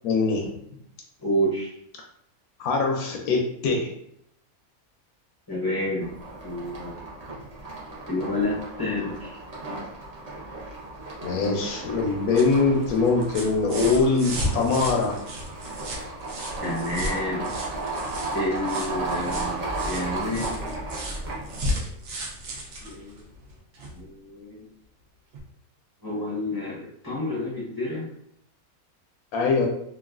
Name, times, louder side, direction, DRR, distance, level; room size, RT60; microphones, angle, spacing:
voice 1, 0.0-0.5 2.6-3.9 11.2-15.2 29.3-29.7, left 4 dB, 80° left, 1 dB, 1.0 m, -23 dB
voice 2, 1.2-1.7 5.5-6.1 6.4-7.0 8.1-9.4 16.6-17.5 18.3-20.8 22.8-23.2 23.9-24.7 26.0-28.1, left 1 dB, 25° left, -6 dB, 0.5 m, -29 dB
sound 1, 6.0-21.6, right 2 dB, 35° right, 0.6 m, -35 dB
sound 2, 12.0-24.0 25.3-25.4, equal, 65° right, 1.0 m, -35 dB
3.0 x 2.3 x 2.3 m, 0.71 s
omnidirectional pair, 1.5 m